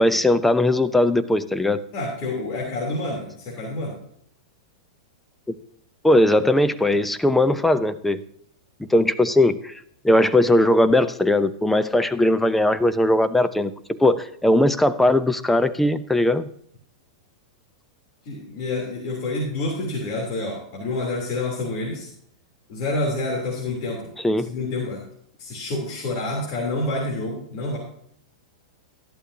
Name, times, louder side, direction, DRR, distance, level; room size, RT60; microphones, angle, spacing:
voice 1, 0.0-1.8 6.0-8.2 8.9-9.7 10.0-16.5 24.2-24.5, left 1 dB, 5° left, 12 dB, 0.7 m, -19 dB
voice 2, 1.9-4.0 18.2-22.1 22.7-24.1 24.4-25.0 25.4-27.8, left 2 dB, 45° left, -2 dB, 3.3 m, -28 dB
13.5 x 11.5 x 2.8 m, 0.66 s
hypercardioid pair, 130°, 3 cm